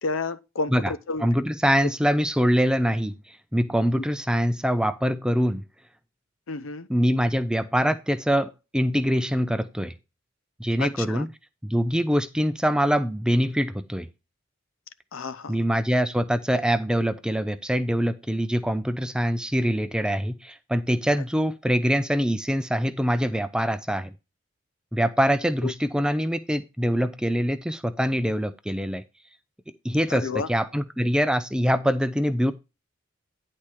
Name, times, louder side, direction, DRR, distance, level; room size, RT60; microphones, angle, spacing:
voice 1, 0.0-1.3 1.8-1.9 4.0-4.1 6.5-6.9 10.8-11.3 15.1-15.6 25.6-25.7 30.1-30.5, left 4 dB, 85° left, 0.7 m, -30 dB
voice 2, 1.2-5.6 6.9-9.9 10.6-11.3 11.6-14.1 15.5-24.1 24.9-29.0 29.8-32.5, equal, 5° right, 0.5 m, -24 dB
10.5 x 4.4 x 4.9 m
head